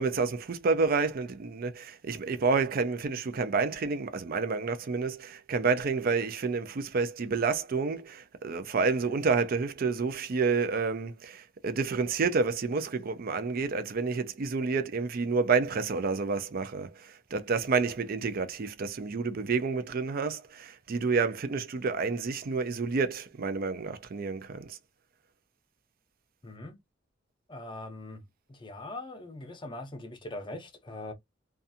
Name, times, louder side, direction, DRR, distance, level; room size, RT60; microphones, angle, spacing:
voice 1, 0.0-24.8, right 4 dB, 50° right, 0.4 m, -29 dB
voice 2, 26.4-26.8 27.5-28.2 28.5-31.1, left 2 dB, 25° left, 0.6 m, -41 dB
2.5 x 2.3 x 2.6 m
head